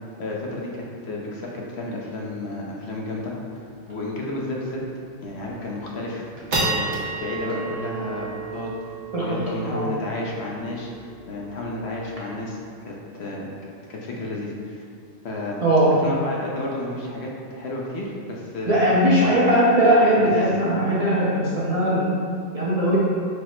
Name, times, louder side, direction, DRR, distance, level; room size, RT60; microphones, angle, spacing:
voice 1, 0.2-3.3 3.9-4.8 5.2-6.2 6.6-8.7 9.2-10.9 11.3-12.6 12.9-13.5 13.9-14.8 15.2-15.6 16.0-18.8 19.2-19.4 20.2-20.5, left 2 dB, 70° left, -2 dB, 0.9 m, -31 dB
sound 1, 3.9-4.1 4.6-4.7 5.2-5.6 6.0-12.6, right 3 dB, 70° right, 1.1 m, -32 dB
voice 2, 9.1-9.9 15.6-15.9 18.7-22.0 22.5-23.0, equal, 40° right, -8 dB, 0.7 m, -19 dB
4.7 x 2.0 x 4.3 m, 2.3 s
omnidirectional pair, 1.2 m